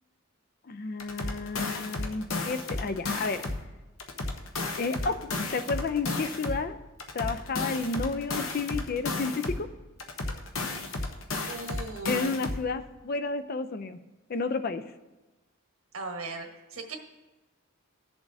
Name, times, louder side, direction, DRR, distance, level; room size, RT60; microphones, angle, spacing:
voice 1, 0.7-3.5 4.8-6.8 7.1-9.7 12.1-14.0 14.3-14.8, left 4 dB, 45° left, 10 dB, 0.4 m, -31 dB
sound 1, 1.0-3.7 4.0-6.7 7.0-9.7 10.0-12.7, left 2 dB, 75° left, 1.0 m, -33 dB
voice 2, 11.5-12.3 15.9-17.0, right 3 dB, 80° right, 3 dB, 1.3 m, -38 dB
17.5 x 7.0 x 2.7 m, 1.1 s
head